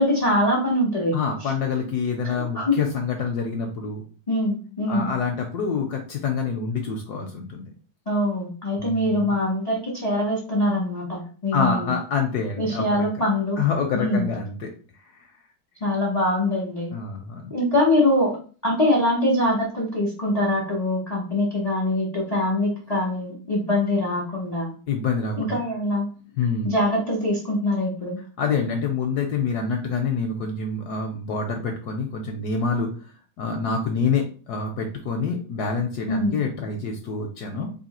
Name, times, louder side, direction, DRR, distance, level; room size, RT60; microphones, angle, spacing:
voice 1, 0.0-1.1 1.4-1.5 2.3-2.8 4.3-5.1 8.1-11.9 12.6-13.6 13.9-14.3 15.8-16.9 17.5-18.3 18.6-24.7 25.4-26.1 26.6-28.2 36.1-36.4, left 1 dB, 40° left, -3 dB, 0.5 m, -23 dB
voice 2, 1.1-4.1 4.9-7.6 8.8-9.3 11.5-13.2 13.6-14.7 16.9-17.5 24.9-25.6 26.4-26.7 28.4-32.9 33.4-37.7, left 5 dB, 70° left, 3 dB, 0.9 m, -26 dB
3.1 x 2.7 x 4.1 m, 0.40 s
omnidirectional pair, 2.2 m